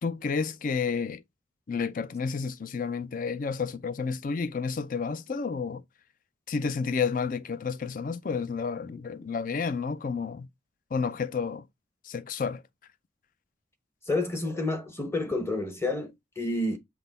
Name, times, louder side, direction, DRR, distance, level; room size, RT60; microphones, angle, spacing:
voice 1, 0.0-1.2 1.7-5.8 6.5-10.5 10.9-11.7 12.0-12.6, left 5 dB, 45° left, 0.4 m, -30 dB
voice 2, 14.1-16.8, left 2 dB, 15° left, 0.9 m, -29 dB
5.8 x 2.1 x 3.9 m
head